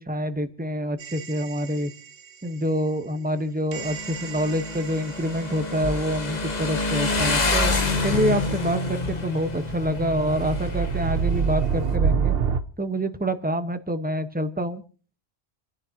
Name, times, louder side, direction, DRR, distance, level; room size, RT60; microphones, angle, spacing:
voice 1, 0.1-1.9 2.4-12.4 12.8-14.8, equal, 10° right, 8 dB, 1.0 m, -27 dB
sound 1, 1.0-2.1 3.7-5.5 9.4-12.6, right 7 dB, 65° right, 1.0 m, -27 dB
Motorcycle, 3.7-12.0, left 3 dB, 40° left, 1.3 m, -28 dB
sound 2, 7.7-9.2, left 2 dB, 75° left, 3.0 m, -38 dB
29.5 x 11.0 x 2.9 m, 0.39 s
omnidirectional pair, 1.1 m